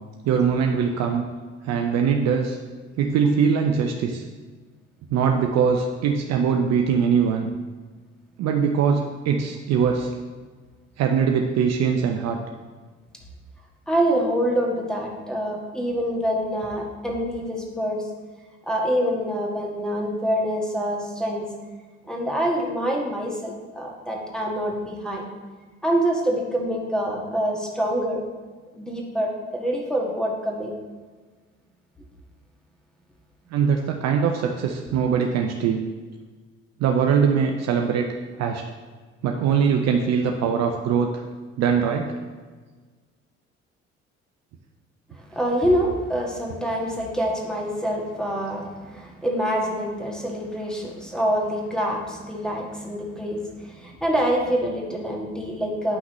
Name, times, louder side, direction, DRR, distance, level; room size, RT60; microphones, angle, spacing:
voice 1, 0.2-1.3 1.6-2.6 3.0-4.2 5.1-7.5 8.4-10.1 11.0-12.4 33.5-35.8 36.8-38.1 38.4-38.6 39.2-41.1 41.6-42.1, right 6 dB, 45° right, 3 dB, 0.7 m, -22 dB
voice 2, 13.9-18.1 18.7-21.5 22.1-25.2 25.8-28.2 28.8-30.7 45.1-56.0, equal, ahead, -1 dB, 1.6 m, -26 dB
9.6 x 5.8 x 3.1 m, 1.4 s
figure-of-eight pair, 50°, 36 cm